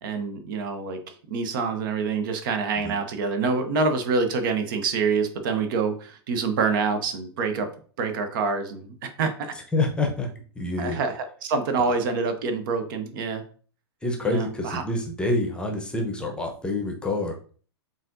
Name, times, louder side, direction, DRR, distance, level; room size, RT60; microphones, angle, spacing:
voice 1, 0.0-1.0 1.3-7.7 8.0-9.5 10.8-11.1 11.4-13.4 14.3-14.8, right 4 dB, 50° right, 7 dB, 0.7 m, -26 dB
voice 2, 9.7-10.3 10.6-11.0 11.9-12.0 14.0-17.3, left 2 dB, 5° left, 2 dB, 0.8 m, -27 dB
7.2 x 2.6 x 2.6 m, 0.42 s
figure-of-eight pair, 100°, 14 cm